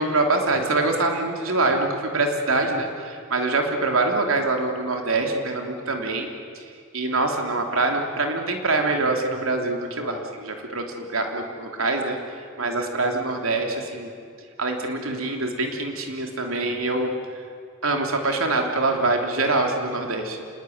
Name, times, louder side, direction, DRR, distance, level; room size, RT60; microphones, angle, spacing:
voice 1, 0.0-6.3 6.5-14.1 14.6-17.1 17.8-20.4, right 2 dB, 75° right, 3 dB, 3.3 m, -24 dB
27.0 x 19.5 x 9.5 m, 2.2 s
head